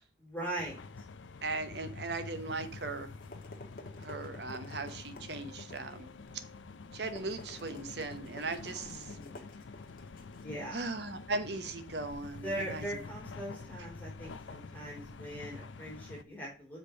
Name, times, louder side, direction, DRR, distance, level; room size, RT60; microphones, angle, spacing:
voice 1, 0.2-0.8 8.7-9.5 10.4-10.8 12.4-16.8, right 1 dB, 10° left, 3.5 m, -41 dB
sound 1, 0.6-16.2, left 3 dB, 85° left, 0.6 m, -47 dB
voice 2, 1.4-3.1 4.0-6.1 6.9-9.1 10.7-12.8, right 3 dB, 60° right, 1.0 m, -38 dB
sound 2, 3.1-11.7, left 1 dB, 50° left, 1.4 m, -53 dB
6.9 x 5.2 x 5.1 m
head